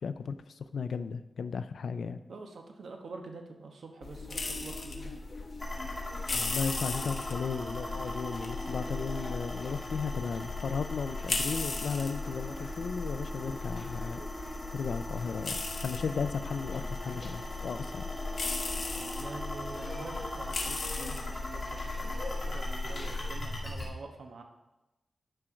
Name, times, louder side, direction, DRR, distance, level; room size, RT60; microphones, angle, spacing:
voice 1, 0.0-2.2 6.3-14.2 14.7-18.1, left 5 dB, 80° left, 12 dB, 0.4 m, -35 dB
voice 2, 2.3-5.2 19.0-24.4, right 3 dB, 80° right, 3 dB, 1.2 m, -46 dB
sound 1, 4.0-23.3, left 3 dB, 50° left, 1.1 m, -38 dB
sound 2, 5.6-23.9, left 2 dB, 20° left, 2.0 m, -39 dB
11.5 x 4.5 x 5.1 m, 0.99 s
wide cardioid pair, 145°, 0 cm